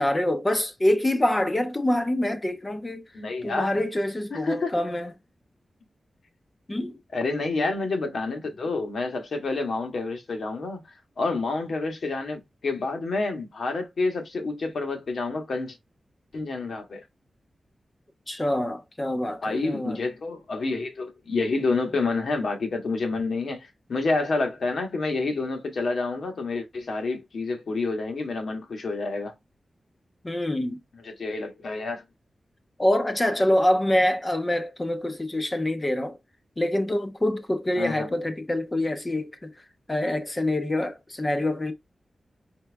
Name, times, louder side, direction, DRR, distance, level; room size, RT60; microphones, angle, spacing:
voice 1, 0.0-3.0 3.4-5.1 6.7-7.0 18.3-20.0 30.2-30.8 32.8-36.2 36.6-39.5 39.9-41.7, left 1 dB, 20° left, 0.6 m, -25 dB
voice 2, 3.1-3.8 4.3-4.8 7.1-10.8 11.2-15.8 16.3-17.0 19.4-29.3 31.0-32.0 37.8-38.1, left 3 dB, 70° left, 1.5 m, -28 dB
4.5 x 3.1 x 3.4 m
wide cardioid pair, 170°, 0 cm